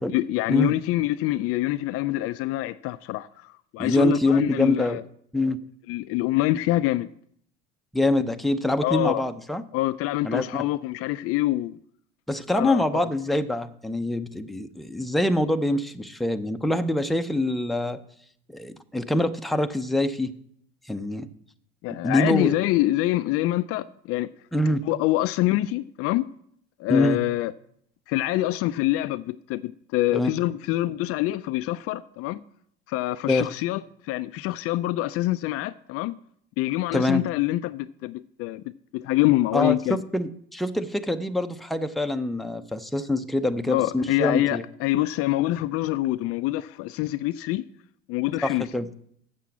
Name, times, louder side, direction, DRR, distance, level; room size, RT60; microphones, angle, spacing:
voice 1, 0.1-5.0 5.9-7.1 8.8-9.2 9.7-11.8 12.5-13.1 21.8-24.3 24.8-26.2 26.8-27.5 28.1-32.4 32.9-36.1 36.6-38.6 38.9-40.0 43.7-47.6 48.1-48.7, left 16 dB, 50° left, 0.4 m, -25 dB
voice 2, 3.8-5.0 5.3-5.6 7.9-9.6 10.2-10.6 12.3-18.0 18.5-20.3 20.9-21.3 22.0-22.5 24.5-24.8 26.9-27.2 30.1-30.3 33.3-33.5 36.9-37.2 39.5-44.6 48.4-48.9, left 1 dB, ahead, 0.6 m, -25 dB
7.5 x 6.7 x 7.2 m
hypercardioid pair, 80°, 29 cm